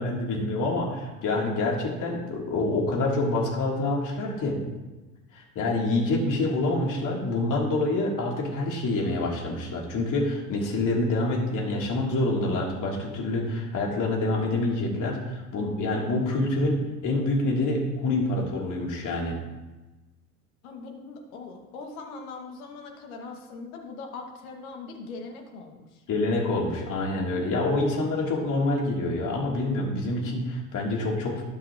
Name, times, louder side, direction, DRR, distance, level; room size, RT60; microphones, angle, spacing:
voice 1, 0.0-4.6 5.3-19.4 26.1-31.4, left 2 dB, 40° left, -2 dB, 3.3 m, -27 dB
voice 2, 20.6-26.0, left 4 dB, 65° left, 2 dB, 2.2 m, -41 dB
17.5 x 6.1 x 3.1 m, 1.2 s
hypercardioid pair, 75°, 46 cm